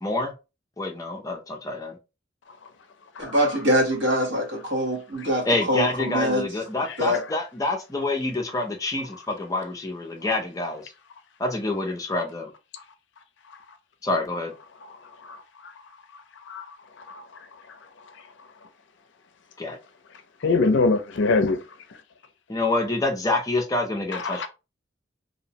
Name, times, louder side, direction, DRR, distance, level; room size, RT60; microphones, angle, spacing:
voice 1, 0.0-0.3 0.8-2.0 5.4-10.9 11.4-12.5 14.0-14.5 19.6-19.8 22.5-24.5, left 2 dB, 20° left, 0.5 m, -27 dB
voice 2, 3.2-6.5 7.0-7.2, equal, 70° right, 1.0 m, -24 dB
voice 3, 20.4-21.6 24.1-24.5, left 3 dB, 75° left, 0.4 m, -22 dB
2.7 x 2.0 x 2.7 m
head